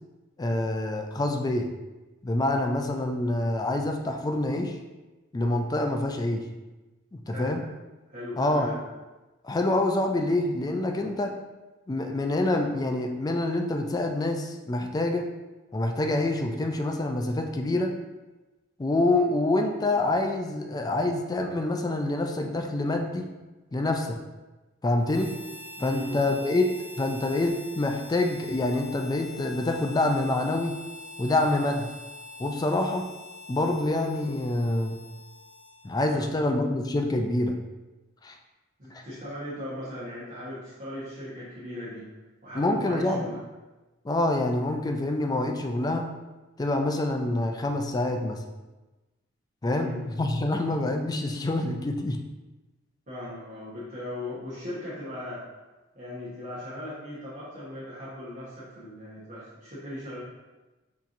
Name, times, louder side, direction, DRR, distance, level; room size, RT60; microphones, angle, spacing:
voice 1, 0.4-1.7 2.2-4.8 5.3-6.4 7.1-7.6 8.4-8.8 9.4-11.3 11.9-15.3 15.7-17.9 18.8-23.3 23.7-24.2 24.8-25.3 25.8-26.7 27.0-30.8 31.2-31.9 32.4-33.1 33.5-35.0 35.8-37.6 38.2-38.4 38.9-39.0 42.6-43.3 44.0-46.1 46.6-48.4 49.6-52.2, left 2 dB, 20° left, 4 dB, 0.3 m, -26 dB
voice 2, 7.3-7.6 8.1-8.8 25.8-26.2 36.1-36.3 38.8-42.1 42.4-43.4 49.6-50.0 53.1-55.4 55.9-60.2, left 1 dB, 40° right, -10 dB, 1.1 m, -38 dB
Harmonica, 25.0-36.1, left 2 dB, 45° left, 1.0 m, -45 dB
5.7 x 2.9 x 2.5 m, 1.1 s
head